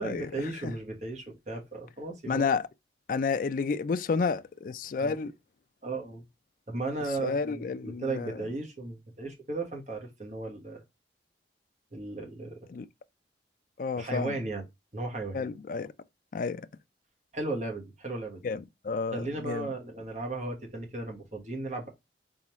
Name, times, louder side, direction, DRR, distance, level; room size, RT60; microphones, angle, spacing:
voice 1, 0.0-2.5 5.0-5.2 5.8-6.2 6.7-10.8 11.9-12.7 13.9-14.6 14.9-15.4 17.3-18.4 19.1-21.9, right 2 dB, 40° right, 1.4 m, -35 dB
voice 2, 2.3-2.6 3.1-5.3 7.2-8.4 12.7-12.8 13.8-14.4 15.3-15.9 16.3-16.7 18.4-19.7, left 5 dB, 45° left, 0.3 m, -30 dB
4.0 x 3.7 x 3.0 m
head